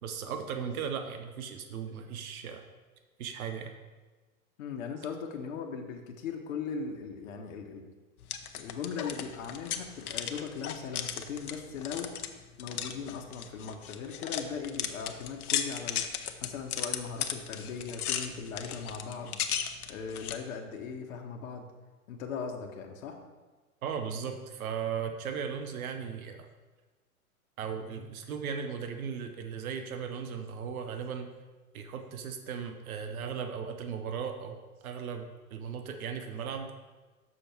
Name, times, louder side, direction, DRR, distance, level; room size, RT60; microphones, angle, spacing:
voice 1, 0.0-2.7 3.2-3.7 23.8-26.5 27.6-31.3 31.7-36.7, right 7 dB, 70° right, 6 dB, 1.0 m, -37 dB
voice 2, 4.6-7.8 8.5-12.1 12.6-16.1 16.4-21.7 22.1-23.2, left 6 dB, 60° left, 3 dB, 1.2 m, -39 dB
sound 1, 8.2-20.4, left 8 dB, 75° left, 0.8 m, -36 dB
6.8 x 6.3 x 4.5 m, 1.3 s
hypercardioid pair, 125°, 44 cm